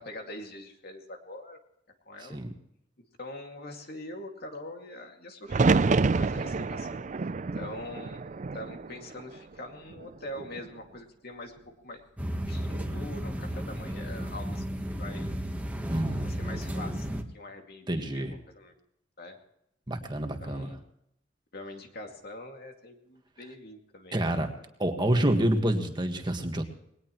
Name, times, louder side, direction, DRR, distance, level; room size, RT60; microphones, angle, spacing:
voice 1, 0.0-1.6 2.1-2.4 3.2-5.9 6.1-7.1 7.5-8.2 8.5-11.5 11.8-12.0 12.4-14.6 15.0-15.3 16.2-18.7 19.2-19.4 20.4-20.8 21.5-24.3, left 1 dB, 55° left, 3 dB, 2.4 m, -43 dB
sound 1, 5.5-9.5 9.9-10.7 12.5-13.0, right 4 dB, 40° right, 0.5 m, -28 dB
sound 2, 12.2-17.2, equal, 10° right, 1.3 m, -33 dB
voice 2, 15.9-16.3 17.9-18.3 19.9-20.8 24.1-24.5 24.8-26.8, right 1 dB, 25° right, 4 dB, 1.7 m, -28 dB
21.0 x 18.5 x 3.1 m, 0.78 s
head